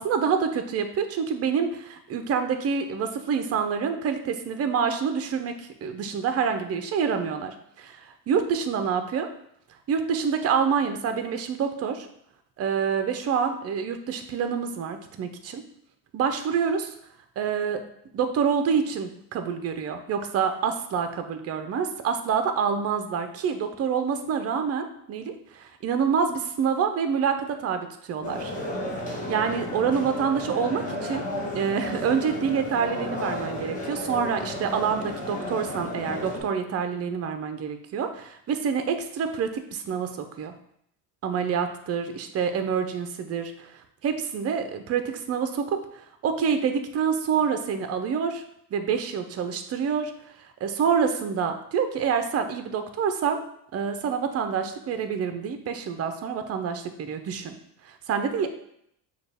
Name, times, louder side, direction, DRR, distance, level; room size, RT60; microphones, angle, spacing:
voice 1, 0.0-9.3 9.9-12.1 12.6-15.6 16.1-16.9 17.4-17.8 18.1-28.5 29.1-31.2 31.5-40.5 41.2-48.4 48.7-50.1 50.6-53.4 53.7-57.5 57.8-58.5, right 6 dB, 35° right, 7 dB, 0.6 m, -27 dB
sound 1, 28.2-36.4, left 1 dB, 20° left, 1.3 m, -33 dB
6.3 x 2.4 x 3.4 m, 0.72 s
cardioid pair, 120°, 42 cm